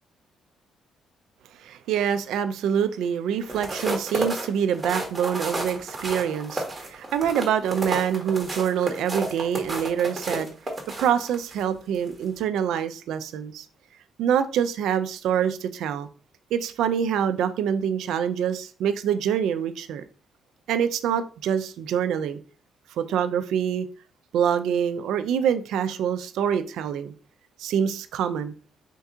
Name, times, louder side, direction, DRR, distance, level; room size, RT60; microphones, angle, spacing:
voice 1, 1.6-10.5 11.0-13.7 14.2-16.1 16.5-20.0 20.7-22.4 23.0-23.9 24.3-27.1 27.6-28.5, right 8 dB, 80° right, 0.4 m, -25 dB
sound 1, 3.4-11.6 12.1-12.3, right 2 dB, 20° right, 1.4 m, -31 dB
4.4 x 2.7 x 3.5 m
cardioid pair, 90°, 0 cm